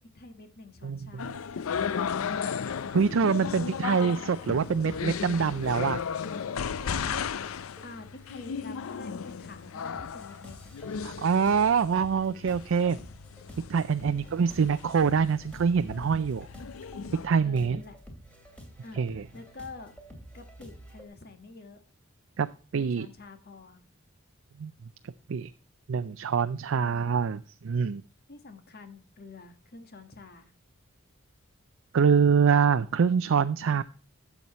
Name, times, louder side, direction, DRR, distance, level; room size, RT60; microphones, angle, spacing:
voice 1, 0.0-1.5 6.3-6.4 6.8-7.3 7.8-10.7 14.0-14.6 17.4-18.0 18.8-19.9 20.3-21.8 22.7-23.8 28.3-30.5 33.6-33.8, left 3 dB, 50° left, 8 dB, 1.5 m, -47 dB
sound 1, 1.2-17.3, left 6 dB, 85° left, 0.5 m, -35 dB
voice 2, 2.9-6.0 11.0-13.0 13.7-16.5 17.2-17.8 19.0-19.2 22.4-22.5 22.7-23.1 24.6-24.7 25.3-25.5 25.9-28.0 31.9-33.8, right 6 dB, 65° right, 11 dB, 0.4 m, -25 dB
sound 2, 4.7-6.0 6.8-7.0 7.8-8.8 9.0-21.1, equal, 5° left, 2.6 m, -49 dB
12.5 x 7.1 x 3.0 m, 0.38 s
head